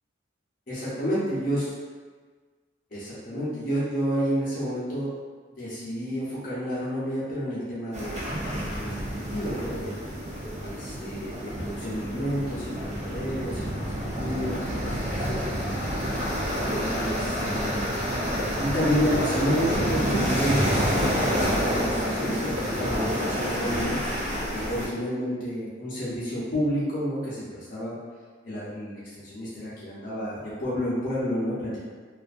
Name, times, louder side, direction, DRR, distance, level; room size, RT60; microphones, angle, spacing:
voice 1, 0.7-1.7 2.9-5.1 5.5-9.9 10.6-13.7 14.2-15.4 16.8-17.9 18.6-24.0 24.5-27.9 28.4-31.8, equal, 45° left, -10 dB, 0.7 m, -30 dB
sound 1, 7.9-24.9, equal, 35° right, 0.4 m, -28 dB
2.4 x 2.4 x 2.4 m, 1.5 s
head